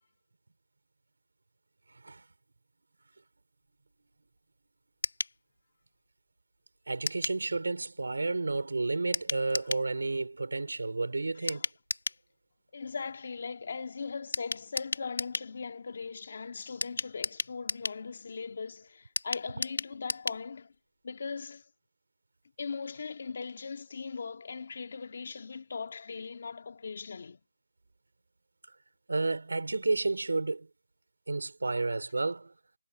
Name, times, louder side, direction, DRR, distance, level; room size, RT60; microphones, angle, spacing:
sound 1, 5.0-5.4 7.1-7.4 9.1-9.9 11.5-12.2 14.3-15.5 16.8-18.0 19.2-20.4 20.7-20.8 21.1-21.2, left 3 dB, 80° left, 2.6 m, -34 dB
voice 1, 6.9-11.7 29.1-30.7 31.3-32.5, right 3 dB, 90° right, 4.1 m, -31 dB
voice 2, 12.7-20.7 21.0-21.6 22.6-27.4, left 5 dB, 45° left, 2.7 m, -39 dB
hypercardioid pair, 175°, 0 cm